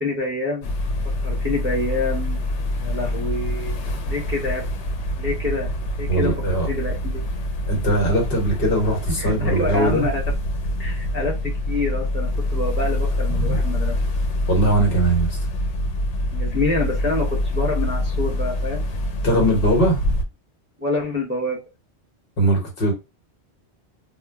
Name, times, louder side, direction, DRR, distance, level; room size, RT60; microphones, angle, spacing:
voice 1, 0.0-0.7 1.2-2.4 2.8-3.8 4.1-4.6 5.2-5.7 6.0-6.3 6.7-7.2 9.2-10.2 10.8-13.9 16.3-18.9 20.8-21.6, left 2 dB, 15° right, 0.5 m, -26 dB
sound 1, 0.6-20.2, left 1 dB, 85° left, 0.9 m, -25 dB
voice 2, 6.1-6.7 7.7-10.0 13.4-13.5 14.5-15.4 19.2-20.0 22.4-22.9, right 1 dB, 55° left, 1.1 m, -20 dB
2.2 x 2.1 x 3.4 m
omnidirectional pair, 1.2 m